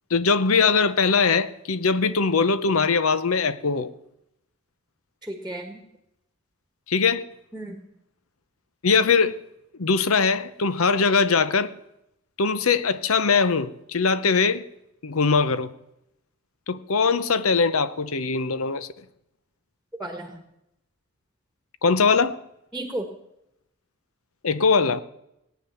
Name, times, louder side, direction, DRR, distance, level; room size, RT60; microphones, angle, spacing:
voice 1, 0.1-3.9 6.9-7.2 8.8-9.4 9.8-11.7 12.4-14.6 15.0-15.7 16.7-18.9 21.8-22.4 24.4-25.0, left 5 dB, 80° left, 0.8 m, -21 dB
voice 2, 5.2-5.8 7.5-7.8 20.0-20.4 22.7-23.1, right 1 dB, 5° right, 1.4 m, -33 dB
18.0 x 9.4 x 7.1 m
head